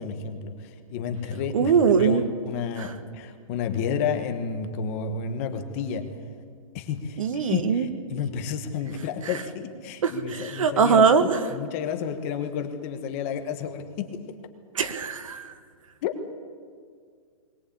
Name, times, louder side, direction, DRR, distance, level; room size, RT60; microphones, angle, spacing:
voice 1, 0.0-1.7 2.0-6.1 6.7-14.2 16.0-16.1, left 7 dB, 25° left, 6 dB, 1.2 m, -31 dB
voice 2, 1.5-2.2 2.8-2.9 7.2-7.9 10.0-11.4 14.8-15.5, right 6 dB, 65° right, 9 dB, 1.8 m, -21 dB
21.5 x 18.5 x 8.6 m, 2.1 s
hypercardioid pair, 175°, 18 cm